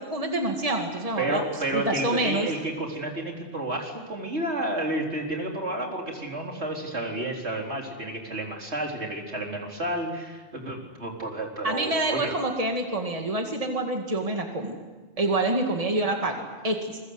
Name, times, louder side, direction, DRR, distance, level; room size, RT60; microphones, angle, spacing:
voice 1, 0.0-1.4 1.7-2.5 11.6-14.8 15.2-17.0, right 2 dB, 30° right, 3 dB, 2.3 m, -27 dB
voice 2, 1.2-12.3, right 1 dB, 75° right, 1 dB, 4.5 m, -31 dB
28.0 x 23.0 x 8.1 m, 1.3 s
omnidirectional pair, 1.1 m